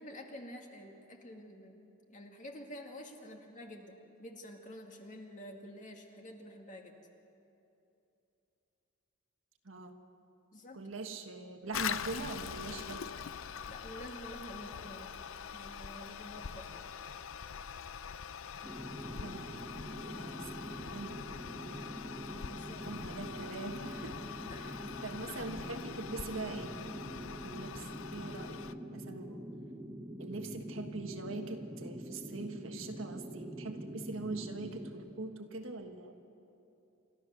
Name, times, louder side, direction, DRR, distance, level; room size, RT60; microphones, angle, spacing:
voice 1, 0.0-1.8 2.1-6.9 10.5-10.8 13.7-15.1 15.5-16.8 22.5-22.8 24.5-24.6 25.3-25.4, equal, 40° left, 2 dB, 2.1 m, -49 dB
voice 2, 9.6-10.0 10.7-13.0 19.2-19.7 20.0-21.1 22.8-24.2 24.6-24.7 25.0-26.8 27.2-29.4 30.2-36.1, right 3 dB, 75° right, 5 dB, 1.5 m, -43 dB
Toilet flush, 11.7-28.7, left 7 dB, 70° left, 0.6 m, -43 dB
sound 1, 18.6-34.9, equal, 15° right, 1.1 m, -45 dB
28.5 x 13.0 x 6.9 m, 2.8 s
head